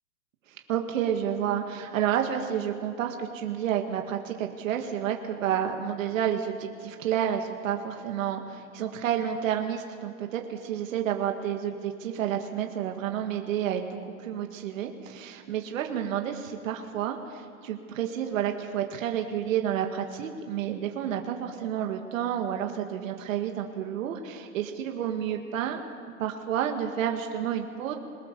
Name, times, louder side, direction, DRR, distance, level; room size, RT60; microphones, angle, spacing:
voice 1, 0.7-25.8 26.2-27.9, right 9 dB, 65° right, 4 dB, 1.9 m, -30 dB
22.5 x 20.5 x 6.9 m, 2.6 s
supercardioid pair, 165°, 42 cm